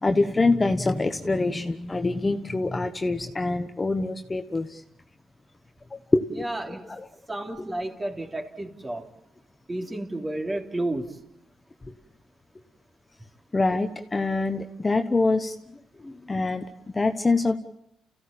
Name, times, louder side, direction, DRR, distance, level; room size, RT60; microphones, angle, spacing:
voice 1, 0.0-4.8 6.1-6.5 6.9-7.0 11.9-12.0 13.5-15.5 16.0-17.6, left 3 dB, 25° left, 7 dB, 1.3 m, -25 dB
voice 2, 6.3-6.9 7.3-9.1 9.7-11.2, right 1 dB, 20° right, 3 dB, 3.2 m, -32 dB
29.5 x 15.5 x 8.8 m, 0.78 s
cardioid pair, 90°, 0 cm